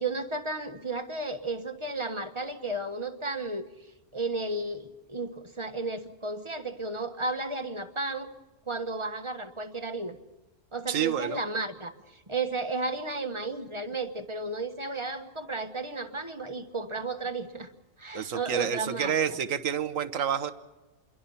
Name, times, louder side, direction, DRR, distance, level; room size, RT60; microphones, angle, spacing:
voice 1, 0.0-8.3 8.7-10.2 10.7-17.7 18.0-19.4, right 3 dB, 25° right, 7 dB, 1.4 m, -33 dB
voice 2, 10.9-11.4 18.1-20.5, right 8 dB, 85° right, 12 dB, 1.4 m, -29 dB
26.5 x 22.5 x 5.6 m, 1.1 s
omnidirectional pair, 1.3 m